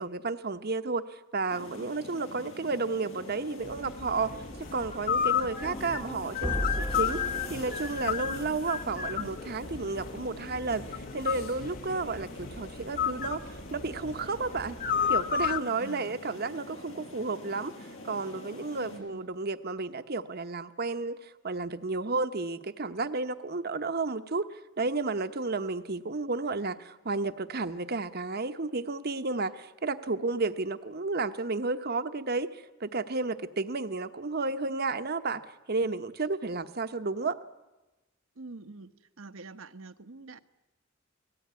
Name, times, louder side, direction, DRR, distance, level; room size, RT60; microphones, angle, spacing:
voice 1, 0.0-4.3 4.7-7.2 7.5-14.8 15.1-17.7 18.0-21.2 21.4-24.4 24.8-32.5 32.8-35.4 35.7-37.4, right 3 dB, 50° right, 10 dB, 1.0 m, -32 dB
sound 1, 1.5-19.0, left 1 dB, 85° left, 7.1 m, -45 dB
sound 2, 3.6-15.6, left 7 dB, 40° left, 1.0 m, -33 dB
sound 3, 5.5-8.8, equal, 5° left, 1.0 m, -37 dB
voice 2, 15.8-16.2 18.8-19.3 38.4-38.9 39.2-40.4, right 3 dB, 80° right, 11 dB, 1.1 m, -45 dB
29.0 x 18.5 x 9.6 m, 1.1 s
head